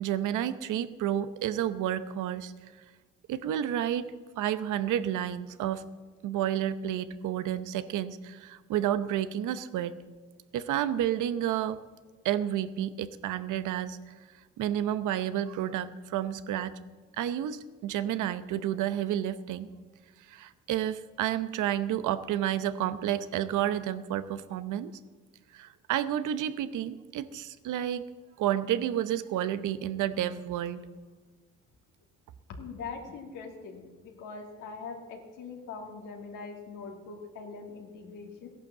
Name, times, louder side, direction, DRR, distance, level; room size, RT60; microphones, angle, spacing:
voice 1, 0.0-2.5 3.3-5.8 6.2-10.0 10.5-11.8 12.2-14.0 14.6-16.8 17.1-19.7 20.3-24.9 25.5-28.1 28.4-30.9, right 11 dB, 85° right, 13 dB, 0.8 m, -30 dB
voice 2, 32.6-38.5, left 4 dB, 85° left, 1 dB, 2.5 m, -42 dB
15.5 x 11.0 x 7.3 m, 1.4 s
cardioid pair, 90°, 30 cm